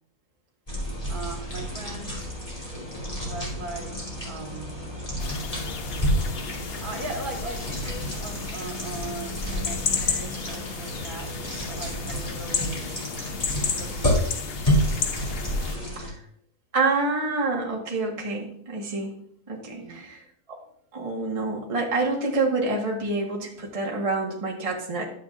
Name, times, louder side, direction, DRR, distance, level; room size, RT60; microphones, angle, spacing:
sound 1, 0.7-16.1, equal, 20° left, 2.5 m, -30 dB
voice 1, 1.1-2.3 3.2-4.0 4.2-5.0 6.8-11.3 11.7-13.2 13.6-14.5 19.7-20.0, right 3 dB, 65° right, 0 dB, 2.0 m, -39 dB
sound 2, 5.2-15.8, left 6 dB, 60° left, 0.6 m, -33 dB
voice 2, 16.7-19.1 19.5-20.2 20.5-20.6 20.9-25.0, right 3 dB, 25° right, -1 dB, 1.2 m, -27 dB
11.5 x 7.3 x 2.4 m, 0.66 s
omnidirectional pair, 1.7 m